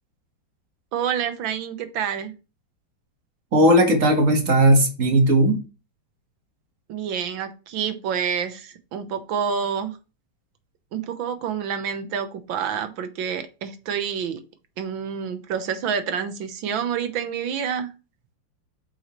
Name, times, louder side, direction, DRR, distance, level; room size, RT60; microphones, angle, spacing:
voice 1, 0.9-2.3 6.9-10.0 10.9-14.4 14.8-17.9, right 7 dB, 85° right, 1.7 m, -28 dB
voice 2, 3.5-5.6, right 1 dB, 45° right, 1.7 m, -17 dB
7.2 x 5.8 x 3.0 m
omnidirectional pair, 2.1 m